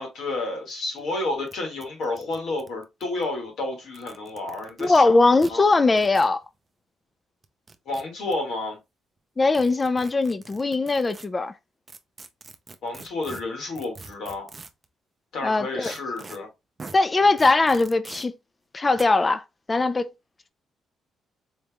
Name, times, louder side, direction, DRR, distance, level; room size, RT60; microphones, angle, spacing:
voice 1, 0.0-5.1 5.5-5.6 7.9-8.8 12.8-14.5 15.3-16.5, left 2 dB, 75° left, 1.8 m, -30 dB
sound 1, 0.7-0.8 1.0-1.1 1.5-1.6 1.8-3.2 3.8-5.0 5.4-5.5 6.0-6.3 7.4-8.3 9.5-11.3 11.9-14.9 15.8-16.4 16.8-17.0 17.4-18.3 19.0-19.1, right 4 dB, 30° right, 0.5 m, -43 dB
voice 2, 4.8-6.4 9.4-11.5 15.4-15.9 16.9-18.3 18.7-19.4 19.7-20.1, left 3 dB, 25° left, 0.4 m, -20 dB
4.1 x 3.4 x 2.2 m
cardioid pair, 90°, 0 cm